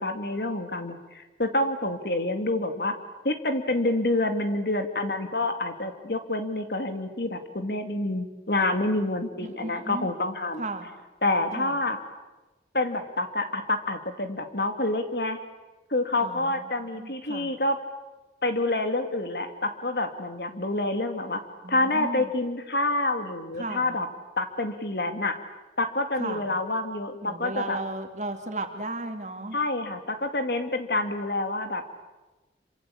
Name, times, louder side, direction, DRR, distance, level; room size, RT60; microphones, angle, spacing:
voice 1, 0.0-3.0 3.2-10.6 11.2-12.0 12.7-15.4 15.9-17.8 18.4-21.4 21.7-24.1 24.4-25.4 25.8-27.8 29.5-31.8, left 2 dB, 65° left, 7 dB, 2.4 m, -27 dB
voice 2, 9.4-10.1 10.6-10.9 11.6-11.8 16.2-17.5 21.6-22.3 23.6-24.0 26.2-26.5 27.2-29.6, right 2 dB, 40° right, 5 dB, 2.6 m, -35 dB
27.5 x 25.0 x 8.6 m, 1.1 s
head